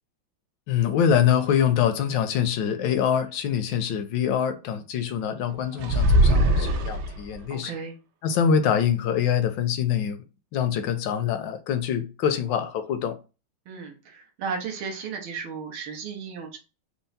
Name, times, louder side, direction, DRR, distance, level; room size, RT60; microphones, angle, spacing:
voice 1, 0.7-7.7 8.2-10.2 10.5-13.2, left 8 dB, 75° left, 1.2 m, -24 dB
sound 1, 5.8-7.4, right 1 dB, 70° right, 1.1 m, -20 dB
voice 2, 7.5-7.9 13.7-16.6, right 5 dB, 85° right, 1.7 m, -34 dB
4.5 x 2.0 x 4.0 m
omnidirectional pair, 2.2 m